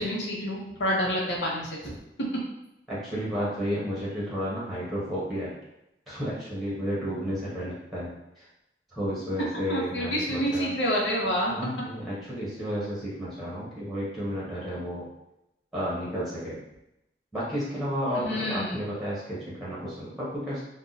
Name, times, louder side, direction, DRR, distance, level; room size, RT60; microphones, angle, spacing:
voice 1, 0.0-2.4 9.7-11.5 18.1-18.8, equal, 75° left, -3 dB, 0.9 m, -28 dB
voice 2, 2.9-5.5 6.1-8.5 8.9-10.7 11.5-15.1 15.7-16.6 17.3-20.6, equal, ahead, -8 dB, 1.0 m, -32 dB
2.7 x 2.2 x 3.9 m, 0.87 s
head